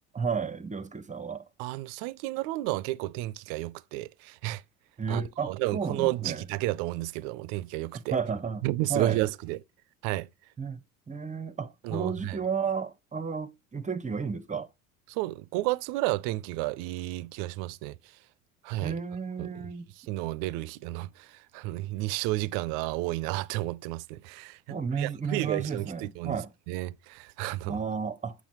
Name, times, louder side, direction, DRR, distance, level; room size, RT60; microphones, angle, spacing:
voice 1, 0.1-1.4 5.0-6.4 7.9-9.2 10.6-10.8 11.1-14.7 18.8-19.8 24.7-26.5 27.7-28.3, right 6 dB, 20° right, 0.7 m, -32 dB
voice 2, 1.6-4.6 5.1-8.2 8.6-9.6 10.0-10.3 11.8-12.4 15.1-18.2 18.6-19.0 19.4-19.7 19.9-26.4 26.7-27.8, right 18 dB, 70° right, 0.5 m, -32 dB
7.2 x 6.1 x 3.0 m
hypercardioid pair, 75°, 40 cm